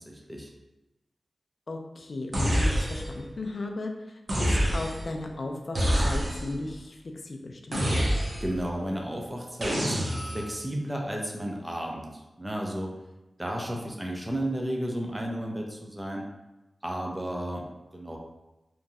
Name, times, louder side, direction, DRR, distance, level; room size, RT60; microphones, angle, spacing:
voice 1, 0.1-0.5 8.4-9.9 10.3-12.1 12.4-12.9 13.4-16.2 16.8-17.6 17.9-18.2, right 1 dB, 15° right, -1 dB, 0.5 m, -33 dB
voice 2, 1.7-3.9 4.3-7.0 7.2-7.9, left 2 dB, 65° left, 3 dB, 0.4 m, -36 dB
sound 1, 2.3-3.3 4.3-5.2 5.7-6.6 7.7-8.6 9.6-10.5, equal, 55° right, 0.6 m, -27 dB
3.0 x 2.4 x 2.6 m, 1.0 s
wide cardioid pair, 60°, 0 cm